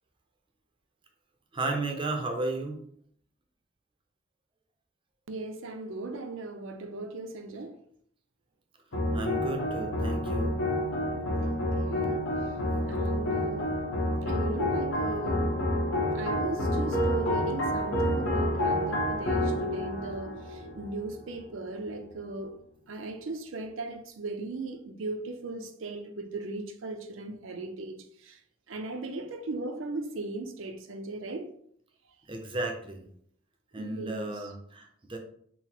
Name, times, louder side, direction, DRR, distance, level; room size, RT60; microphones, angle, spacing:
voice 1, 1.5-2.8 9.1-10.5 32.3-33.0 33.7-35.2, right 2 dB, 25° right, 0.5 m, -33 dB
voice 2, 5.3-7.8 11.4-12.3 12.9-13.8 14.3-15.5 16.1-22.5 22.9-28.4 28.7-31.5 33.7-34.4, right 2 dB, 70° right, 0.5 m, -38 dB
sound 1, 8.9-21.4, left 1 dB, 70° left, 1.0 m, -29 dB
3.8 x 2.0 x 4.4 m
head